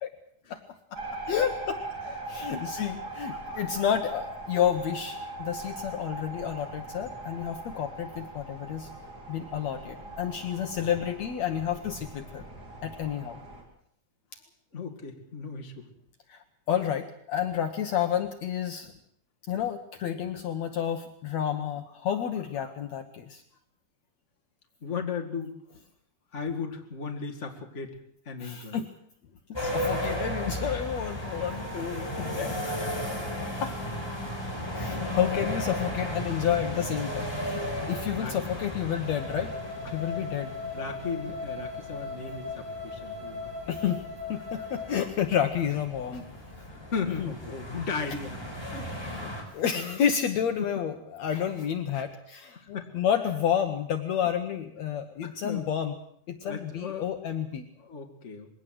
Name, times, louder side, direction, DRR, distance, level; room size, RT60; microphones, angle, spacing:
voice 1, 0.9-8.9 9.3-12.4 12.8-13.4 16.3-18.9 19.5-23.4 28.4-28.9 29.6-32.6 33.6-33.7 34.8-39.5 39.9-40.5 43.7-44.0 44.3-46.3 47.2-47.3 49.1-55.9 56.3-57.7, left 9 dB, 65° left, 7 dB, 2.2 m, -30 dB
sound 1, 0.9-13.6, right 2 dB, 30° right, 4.6 m, -40 dB
voice 2, 2.4-2.7 14.7-15.9 24.8-25.6 26.3-28.0 28.3-28.8 32.0-32.1 32.4-32.8 38.1-38.4 39.8-40.0 40.7-43.5 46.7-49.2 50.6-50.7 51.9-52.0 52.6-52.9 55.1-55.7 56.4-57.1 57.8-58.5, left 5 dB, 25° left, 3 dB, 2.3 m, -36 dB
sound 2, 29.5-49.4, equal, 5° left, 4.8 m, -35 dB
sound 3, 39.0-45.0, left 4 dB, 70° right, 8.4 m, -38 dB
21.5 x 17.5 x 7.7 m, 0.64 s
omnidirectional pair, 3.6 m